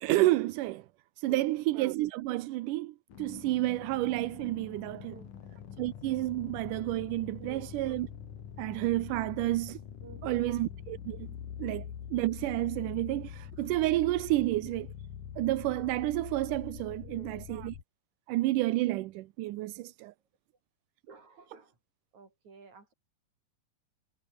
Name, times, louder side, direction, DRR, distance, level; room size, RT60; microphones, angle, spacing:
voice 1, 0.0-0.9 1.2-5.1 5.8-8.1 8.6-9.8 10.2-11.3 11.6-14.9 15.4-17.8 18.3-20.1, right 17 dB, 75° right, 2.2 m, -30 dB
voice 2, 1.3-1.6 5.1-5.3 7.4-7.7 10.0-10.5 17.0-17.5 21.1-21.8 22.1-22.9, right 4 dB, 55° right, 6.7 m, -52 dB
sound 1, 3.1-17.8, left 8 dB, 65° left, 3.7 m, -44 dB
omnidirectional pair, 4.0 m